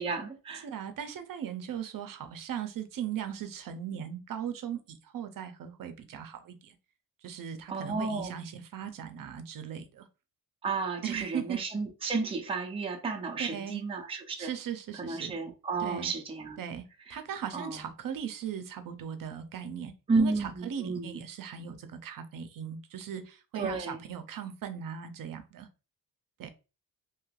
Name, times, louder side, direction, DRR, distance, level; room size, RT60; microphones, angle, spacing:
voice 1, 0.0-0.7 7.7-8.3 10.6-14.5 15.0-16.6 17.1-17.2 17.5-17.9 20.1-21.2 23.5-24.0, right 4 dB, 15° right, 0.5 m, -32 dB
voice 2, 0.6-6.8 7.2-10.1 11.0-11.6 13.4-13.8 14.4-15.3 15.8-16.1 16.6-16.8 17.1-19.9 20.2-25.7 26.4-26.5, right 8 dB, 60° right, 0.6 m, -38 dB
3.2 x 2.9 x 2.3 m
wide cardioid pair, 160°, 37 cm